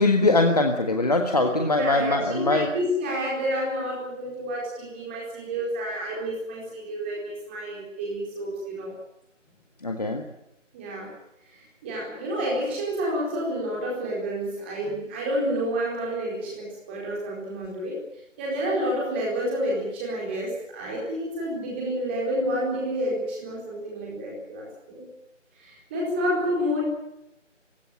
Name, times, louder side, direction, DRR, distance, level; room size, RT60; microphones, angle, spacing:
voice 1, 0.0-2.7 9.8-10.2, left 2 dB, 30° left, 4 dB, 1.6 m, -22 dB
voice 2, 1.8-8.9 10.7-11.1 11.5-18.0 18.4-25.0 25.6-26.8, equal, 10° right, -3 dB, 4.3 m, -29 dB
26.0 x 16.5 x 8.9 m, 0.83 s
figure-of-eight pair, 165°, 38 cm